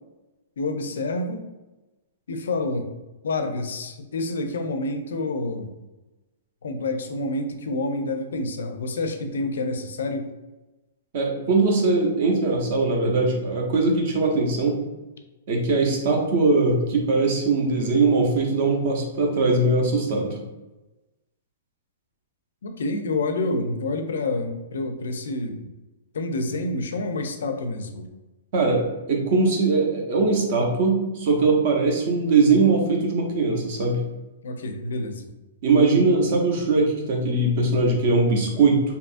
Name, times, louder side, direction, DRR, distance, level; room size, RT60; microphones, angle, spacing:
voice 1, 0.6-1.4 2.3-2.9 3.2-5.7 6.6-10.3 22.6-25.7 26.1-28.1 34.4-35.3, left 2 dB, 80° left, 6 dB, 0.4 m, -28 dB
voice 2, 11.1-14.7 15.5-20.4 28.5-28.8 29.1-34.0 35.6-38.8, right 3 dB, 35° right, 1 dB, 0.5 m, -21 dB
2.7 x 2.3 x 2.5 m, 1.1 s
hypercardioid pair, 175°, 0 cm